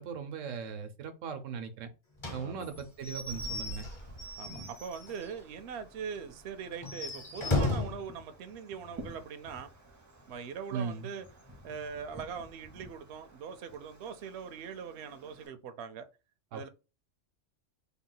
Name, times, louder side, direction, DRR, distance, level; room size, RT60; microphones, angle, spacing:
voice 1, 0.0-1.9 2.3-3.9 10.7-11.1 16.5-16.7, right 6 dB, 85° right, 1.1 m, -38 dB
Slam / Squeak / Wood, 2.2-5.4 5.7-5.8 6.1-6.2 6.7-8.1, left 2 dB, 25° left, 0.8 m, -35 dB
Wind, 3.1-15.5, right 1 dB, 20° right, 0.6 m, -53 dB
voice 2, 4.4-9.7 10.3-11.3 11.6-16.1 16.5-16.7, right 6 dB, 65° right, 0.8 m, -41 dB
3.7 x 2.3 x 3.8 m
omnidirectional pair, 1.3 m